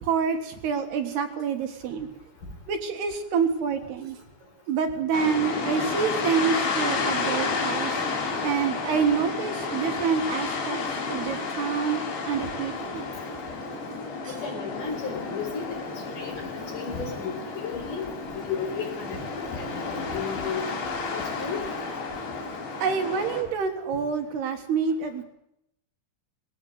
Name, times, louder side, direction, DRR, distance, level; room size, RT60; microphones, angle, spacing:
voice 1, 0.0-2.1 2.7-4.2 4.7-8.0 8.4-10.8 11.1-13.1 14.2-14.3 22.8-25.2, right 6 dB, 65° right, 6 dB, 3.4 m, -27 dB
sound 1, 5.1-23.4, left 4 dB, 75° left, 6.5 m, -31 dB
voice 2, 14.2-15.8 16.1-16.3 16.7-18.0 18.5-19.2 19.5-20.6 21.1-21.6, left 6 dB, 45° left, 3 dB, 5.6 m, -33 dB
21.0 x 17.0 x 8.0 m, 0.78 s
omnidirectional pair, 5.3 m